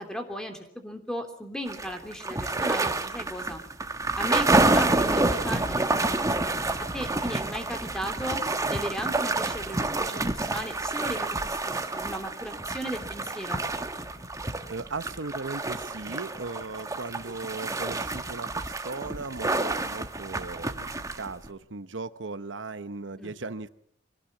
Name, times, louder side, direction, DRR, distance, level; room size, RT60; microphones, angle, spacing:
voice 1, 0.0-3.6 4.2-6.7 6.9-8.4 8.7-13.6 23.2-23.3, equal, 5° left, 5 dB, 3.2 m, -36 dB
sound 1, 1.7-21.5, right 2 dB, 20° right, 1.4 m, -28 dB
voice 2, 14.7-23.7, right 3 dB, 85° right, 12 dB, 1.0 m, -37 dB
25.5 x 18.5 x 7.5 m, 0.68 s
head